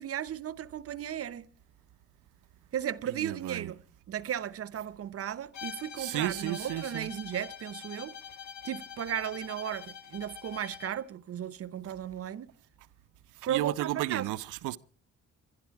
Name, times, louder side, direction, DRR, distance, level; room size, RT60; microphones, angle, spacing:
voice 1, 0.0-1.5 2.7-3.8 4.1-8.2 8.6-12.5 13.5-14.3, right 10 dB, 50° right, 0.7 m, -35 dB
voice 2, 3.1-3.7 6.0-7.1 13.5-14.8, right 15 dB, 90° right, 0.6 m, -33 dB
Bowed string instrument, 5.5-11.0, left 8 dB, 65° left, 1.8 m, -45 dB
24.0 x 11.5 x 4.6 m
cardioid pair, 90°, 30 cm